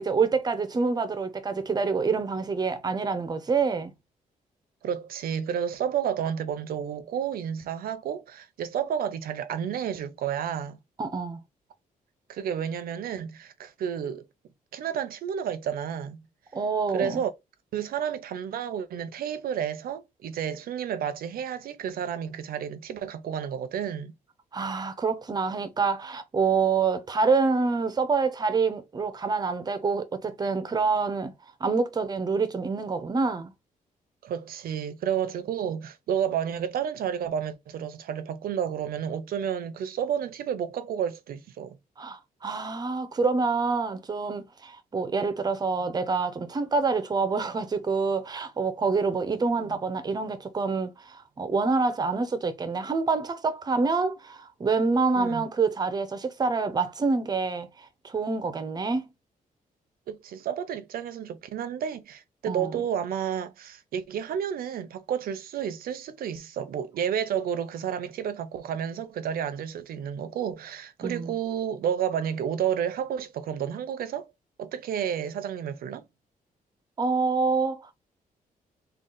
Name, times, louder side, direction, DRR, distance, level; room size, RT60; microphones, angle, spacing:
voice 1, 0.0-3.9 11.0-11.4 16.5-17.2 24.5-31.3 31.6-33.5 42.0-59.1 62.5-62.8 71.0-71.3 77.0-77.9, right 4 dB, 25° right, 0.5 m, -27 dB
voice 2, 4.8-10.8 12.3-14.2 14.7-16.2 16.9-17.3 17.7-24.1 34.2-41.8 49.6-49.7 55.2-55.4 60.1-74.3 74.6-76.0, right 8 dB, 85° right, 0.6 m, -31 dB
3.7 x 2.3 x 3.8 m
wide cardioid pair, 165°, 15 cm